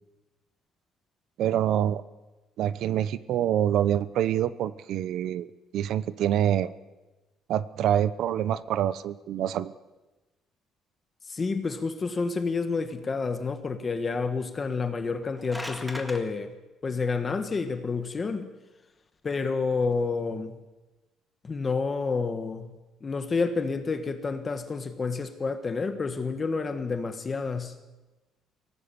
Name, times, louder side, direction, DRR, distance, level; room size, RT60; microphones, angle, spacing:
voice 1, 1.4-2.0 2.6-5.5 5.7-6.7 7.5-9.7, right 10 dB, 60° right, 16 dB, 0.8 m, -26 dB
voice 2, 11.3-16.5 16.8-18.5 19.2-20.6 21.4-22.8 23.0-27.7, left 4 dB, 25° left, 8 dB, 1.4 m, -29 dB
sound 1, 15.2-16.2, left 1 dB, 5° left, 1.9 m, -38 dB
24.0 x 18.0 x 7.0 m, 1.1 s
cardioid pair, 160°, 0 cm